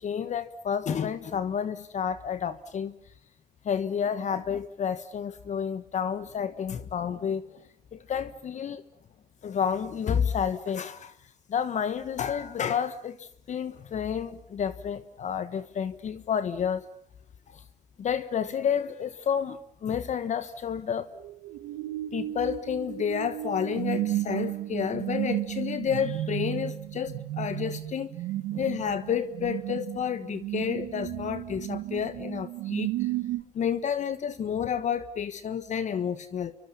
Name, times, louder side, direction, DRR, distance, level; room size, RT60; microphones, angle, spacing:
voice 1, 0.0-2.9 3.6-7.5 7.9-8.8 9.4-11.2 11.5-16.9 17.5-17.6 18.0-21.1 22.1-28.1 28.5-33.1 33.5-36.5, left 8 dB, 45° left, 1.3 m, -30 dB
sound 1, 21.1-33.4, right 15 dB, 90° right, 1.2 m, -33 dB
29.5 x 24.5 x 7.2 m
cardioid pair, 110°, 17 cm